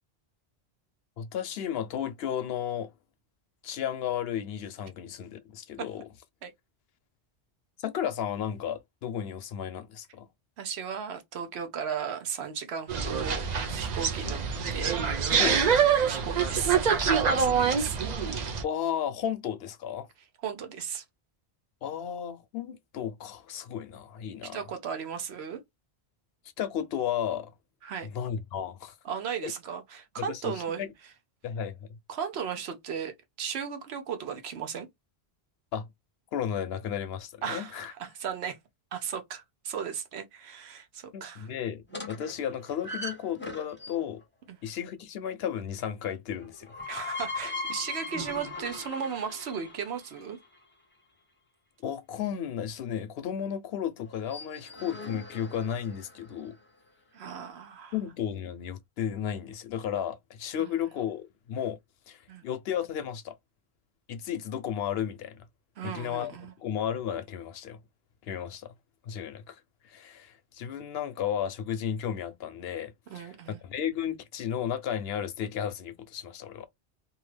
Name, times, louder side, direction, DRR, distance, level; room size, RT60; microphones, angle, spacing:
voice 1, 1.2-2.9 3.6-6.1 7.8-10.3 14.3-14.4 15.4-15.8 18.6-20.1 21.8-24.7 26.6-27.5 28.0-29.0 29.4-29.5 30.2-30.9 31.4-32.0 35.7-35.9 36.3-37.9 41.1-44.2 44.6-46.7 51.8-56.5 57.9-61.8 62.1-63.4 64.1-65.4 65.8-66.3 66.6-67.8 68.3-68.7 69.0-76.7, left 9 dB, 70° left, 0.8 m, -34 dB
voice 2, 10.6-14.4 14.7-15.0 15.3-15.7 16.1-18.0 20.4-21.0 24.5-25.6 27.8-28.1 29.0-30.8 32.1-34.9 37.4-38.6 38.9-41.5 44.5-44.6 46.9-50.4 57.1-57.9 60.6-60.7 62.3-62.4 65.8-66.5 73.1-73.6, right 7 dB, 80° right, 0.9 m, -36 dB
sound 1, 12.9-18.6, right 6 dB, 50° right, 0.6 m, -25 dB
sound 2, 41.9-44.2 46.4-50.4 54.1-56.3, left 2 dB, 15° left, 0.6 m, -39 dB
2.7 x 2.3 x 3.3 m
omnidirectional pair, 1.1 m